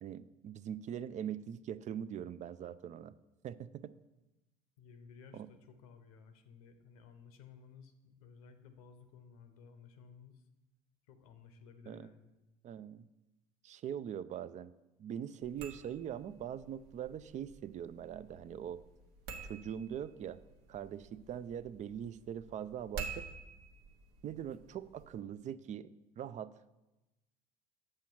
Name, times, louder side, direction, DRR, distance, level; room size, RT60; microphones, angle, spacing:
voice 1, 0.0-3.1 3.4-3.9 5.3-5.5 11.9-12.1 12.6-13.0 13.6-14.7 15.0-18.8 19.4-20.4 20.7-23.3 24.2-25.9 26.2-26.5, right 9 dB, 40° right, 15 dB, 0.4 m, -42 dB
voice 2, 4.8-10.5 11.1-12.3, left 6 dB, 80° left, 8 dB, 0.8 m, -57 dB
sound 1, 15.4-25.2, right 5 dB, 70° right, 1.0 m, -50 dB
7.6 x 5.7 x 4.5 m, 1.0 s
hypercardioid pair, 75°, 18 cm